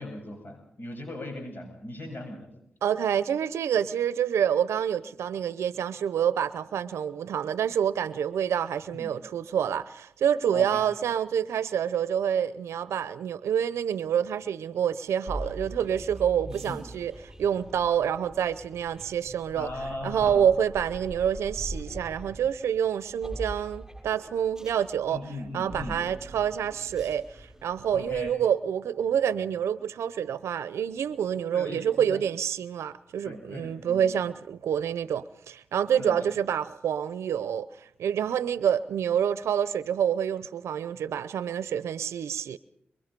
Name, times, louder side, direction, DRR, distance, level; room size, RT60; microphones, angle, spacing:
voice 1, 0.0-2.5 8.9-9.1 10.5-11.0 16.5-16.8 19.5-20.4 25.1-26.0 27.9-28.3 31.5-32.2 33.2-34.1 36.0-36.2, left 2 dB, 50° left, 7.8 m, -38 dB
voice 2, 2.8-17.1 17.4-19.7 20.0-25.2 25.5-37.7 38.0-42.6, right 9 dB, 80° right, 0.7 m, -27 dB
sound 1, 15.3-28.3, right 1 dB, 10° right, 5.8 m, -42 dB
23.5 x 22.5 x 5.2 m
supercardioid pair, 45°, 5 cm